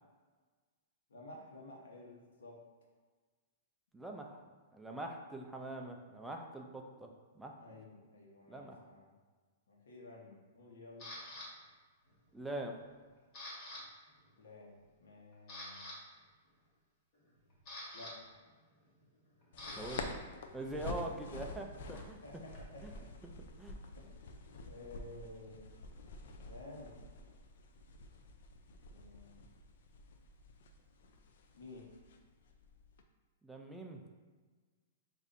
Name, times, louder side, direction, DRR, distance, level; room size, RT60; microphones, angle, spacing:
voice 1, 1.1-2.6 7.6-9.1 9.7-11.1 14.4-15.9 17.9-18.4 22.2-23.0 23.9-24.1 24.5-25.7 26.4-27.2 28.9-29.4 31.5-31.9, left 2 dB, 85° left, -2 dB, 1.1 m, -53 dB
voice 2, 3.9-4.4 4.7-7.1 7.4-7.6 8.5-8.8 12.3-12.7 19.8-20.1 20.5-22.2 22.8-22.9 23.2-23.3 23.6-23.8 33.4-34.0, right 2 dB, 5° right, 1 dB, 0.4 m, -43 dB
Camera, 11.0-11.5 12.1-12.4 12.7-13.8 14.1-14.3 14.8-14.9 15.3-16.0 17.1-20.0 20.3-22.9, left 1 dB, 35° left, 1.3 m, -49 dB
sound 1, 19.5-33.0, left 3 dB, 65° left, 0.5 m, -48 dB
6.7 x 2.6 x 2.6 m, 1.4 s
hypercardioid pair, 150°, 0 cm